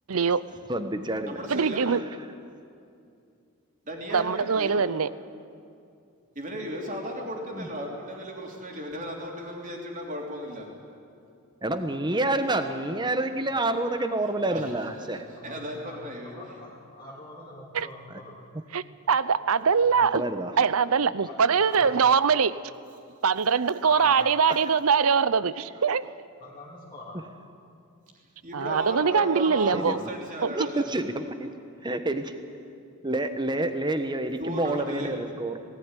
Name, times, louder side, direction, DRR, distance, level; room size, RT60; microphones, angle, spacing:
voice 1, 0.1-0.4 1.5-2.0 4.1-5.1 17.7-17.9 18.7-20.2 20.6-22.6 23.2-26.1 28.5-30.0 30.4-30.7, right 6 dB, 75° right, 17 dB, 0.6 m, -23 dB
voice 2, 0.7-1.4 7.5-7.7 11.6-15.2 18.1-18.2 20.1-20.5 29.7-30.1 30.5-31.5 31.8-32.3 33.0-35.6, right 2 dB, 20° right, 8 dB, 1.2 m, -28 dB
voice 3, 1.3-1.9 3.8-4.8 6.3-10.7 14.5-16.3 28.4-29.8 30.1-30.9 34.4-35.1, equal, 35° right, 0 dB, 3.5 m, -35 dB
voice 4, 15.8-18.4 21.3-22.0 23.8-24.2 26.4-27.3, left 2 dB, 20° left, -6 dB, 2.8 m, -43 dB
18.5 x 17.5 x 9.9 m, 2.5 s
head